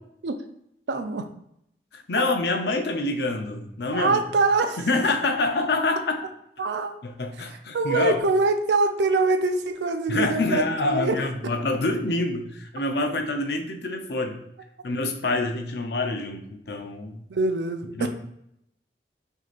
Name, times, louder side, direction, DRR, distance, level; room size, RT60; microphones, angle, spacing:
voice 1, 0.9-1.3 3.9-4.8 6.6-7.0 7.7-10.6 10.9-11.2 17.3-18.1, right 3 dB, 85° right, 7 dB, 0.5 m, -24 dB
voice 2, 1.9-4.2 4.8-6.2 7.0-8.2 10.1-14.4 14.8-17.3 17.9-18.1, left 2 dB, 70° left, 5 dB, 0.6 m, -26 dB
6.2 x 2.7 x 2.5 m, 0.76 s
head